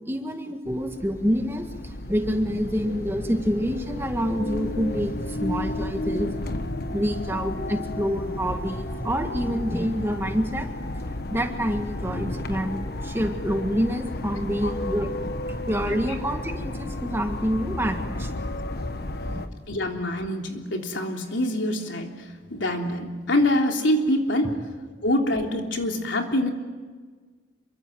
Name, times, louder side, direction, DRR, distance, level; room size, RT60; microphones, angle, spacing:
voice 1, 0.1-6.3 6.9-10.7 11.3-15.1 15.7-18.3 19.3-19.5 24.4-24.5, equal, 15° right, 5 dB, 1.8 m, -27 dB
sound 1, 0.7-19.5, left 1 dB, 55° left, 1.3 m, -32 dB
voice 2, 19.7-24.5 25.0-26.5, left 1 dB, 85° left, 2 dB, 3.3 m, -25 dB
27.0 x 23.5 x 7.8 m, 1.4 s
head